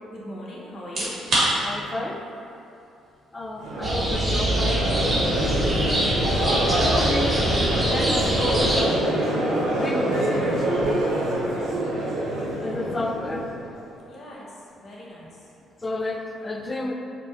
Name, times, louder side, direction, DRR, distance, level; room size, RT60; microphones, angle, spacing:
voice 1, 0.1-1.2 14.1-15.3, equal, 55° left, -5 dB, 0.9 m, -41 dB
sound 1, 0.8-15.6, right 1 dB, 60° right, 1.4 m, -36 dB
voice 2, 1.6-2.2 3.3-5.0 6.9-7.4 7.8-9.0 9.4-10.8 12.6-13.5 15.8-16.9, left 2 dB, 25° left, 4 dB, 0.4 m, -31 dB
Crowd, 3.6-13.8, right 1 dB, 75° right, 0.6 m, -25 dB
sound 2, 3.8-8.8, equal, 30° right, 0.9 m, -24 dB
5.0 x 2.2 x 2.8 m, 2.7 s
supercardioid pair, 60°, 0 cm